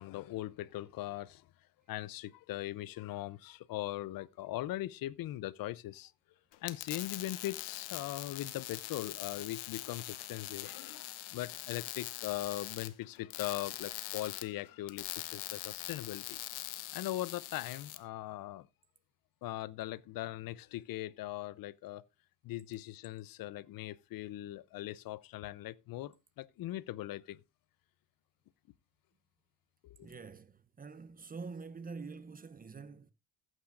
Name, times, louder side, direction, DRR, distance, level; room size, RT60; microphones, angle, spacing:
voice 1, 0.0-1.4 1.9-6.1 6.6-16.4 16.9-18.7 19.4-22.0 22.4-27.4 29.8-30.1, left 15 dB, 65° left, 0.6 m, -40 dB
sound 1, 6.5-18.0, left 15 dB, 80° left, 1.0 m, -43 dB
voice 2, 30.0-33.1, right 4 dB, 25° right, 0.6 m, -46 dB
15.5 x 8.9 x 2.4 m
cardioid pair, 105°, 38 cm